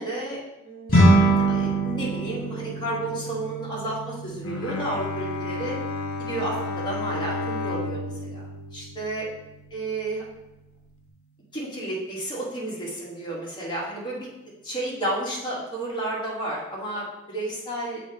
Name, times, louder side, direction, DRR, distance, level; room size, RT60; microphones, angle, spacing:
voice 1, 0.0-5.8 6.2-8.4 8.7-9.3 9.7-10.2 11.5-14.3 14.6-18.0, right 2 dB, 20° left, -6 dB, 1.8 m, -32 dB
sound 1, 0.9-10.4, right 1 dB, 45° left, 2.1 m, -26 dB
Bowed string instrument, 4.4-9.7, left 3 dB, 75° left, 0.8 m, -32 dB
7.0 x 3.0 x 4.7 m, 0.94 s
head